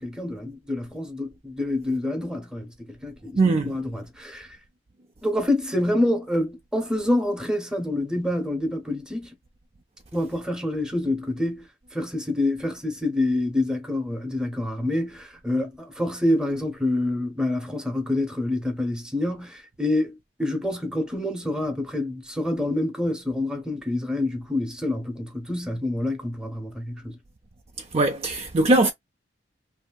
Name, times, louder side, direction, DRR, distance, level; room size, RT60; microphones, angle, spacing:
voice 1, 0.0-4.5 5.2-9.3 10.1-27.2, left 1 dB, 5° right, 0.9 m, -27 dB
voice 2, 3.4-3.8 27.9-28.9, right 2 dB, 35° right, 0.5 m, -20 dB
3.1 x 2.7 x 2.2 m
head